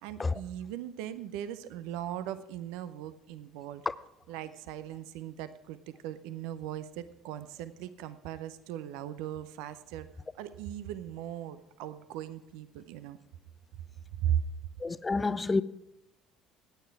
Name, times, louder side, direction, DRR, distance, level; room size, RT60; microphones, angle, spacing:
voice 1, 0.0-3.8 4.3-10.1 10.4-13.2 14.2-14.4, right 11 dB, 70° right, 0.6 m, -38 dB
voice 2, 14.8-15.6, left 3 dB, 20° left, 0.6 m, -29 dB
15.5 x 9.4 x 4.7 m
hypercardioid pair, 60°, 0 cm